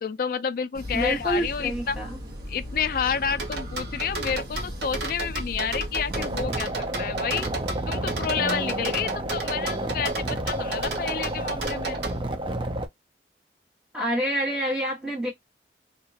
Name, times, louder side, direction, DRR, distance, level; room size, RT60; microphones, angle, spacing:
voice 1, 0.0-2.0 2.5-7.5 7.9-12.0, left 7 dB, 55° left, 0.3 m, -29 dB
sound 1, 0.7-6.5, equal, 60° right, 1.2 m, -36 dB
voice 2, 0.9-2.2 13.9-15.3, equal, 5° right, 1.1 m, -27 dB
sound 2, 3.4-12.2, right 3 dB, 75° right, 0.9 m, -33 dB
sound 3, 6.1-12.9, right 1 dB, 30° right, 0.5 m, -30 dB
2.9 x 2.6 x 2.8 m
head